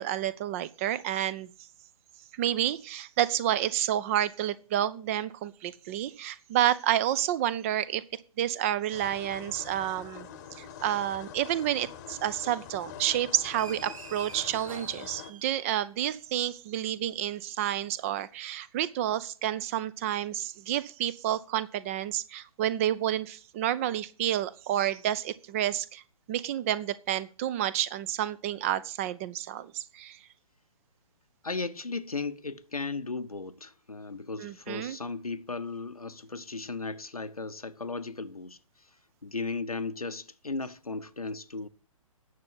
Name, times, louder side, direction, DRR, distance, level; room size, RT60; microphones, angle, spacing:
voice 1, 0.0-1.5 2.3-8.0 8.4-10.3 10.6-26.0 26.3-30.2 34.4-35.0, right 12 dB, 25° right, 0.5 m, -30 dB
sound 1, 8.9-15.3, left 9 dB, 30° left, 1.0 m, -45 dB
sound 2, 13.6-16.1, right 5 dB, 65° right, 1.0 m, -45 dB
voice 2, 31.4-38.6 39.2-41.7, left 3 dB, 85° left, 0.9 m, -36 dB
9.5 x 6.9 x 7.9 m
figure-of-eight pair, 125°, 18 cm